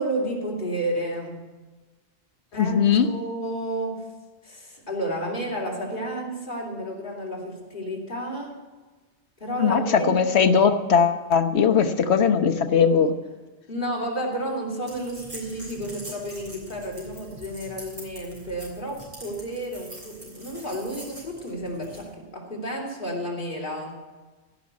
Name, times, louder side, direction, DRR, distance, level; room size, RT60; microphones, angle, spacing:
voice 1, 0.0-1.5 2.5-2.8 3.0-4.1 4.4-8.6 9.4-10.3 11.7-11.8 13.7-24.0, right 1 dB, 45° left, -2 dB, 3.2 m, -31 dB
voice 2, 2.6-3.1 9.6-9.8 10.1-13.1, left 6 dB, 75° left, 8 dB, 1.2 m, -19 dB
sound 1, 14.9-22.1, right 1 dB, 65° right, 4.0 m, -43 dB
16.0 x 6.2 x 9.4 m, 1.2 s
omnidirectional pair, 1.1 m